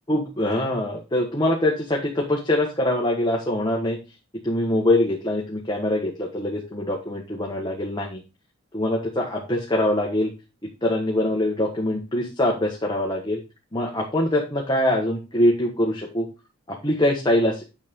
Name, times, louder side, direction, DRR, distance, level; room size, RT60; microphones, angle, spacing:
voice 1, 0.1-4.0 4.4-8.2 8.7-10.3 10.8-13.4 13.7-16.3 16.7-17.6, left 1 dB, 20° left, -1 dB, 1.4 m, -23 dB
9.6 x 6.1 x 3.7 m, 0.28 s
head